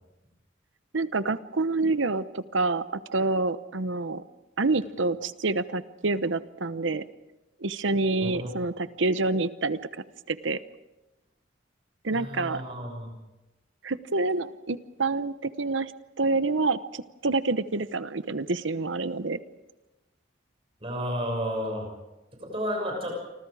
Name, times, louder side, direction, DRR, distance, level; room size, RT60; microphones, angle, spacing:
voice 1, 0.9-4.2 4.6-7.0 7.6-9.8 10.3-10.6 12.0-12.6 13.8-15.9 16.2-19.4, right 3 dB, 80° right, 13 dB, 1.0 m, -27 dB
voice 2, 12.1-13.1 20.8-21.9 22.4-23.1, equal, 30° right, 1 dB, 6.4 m, -32 dB
29.0 x 25.0 x 4.9 m, 1.0 s
head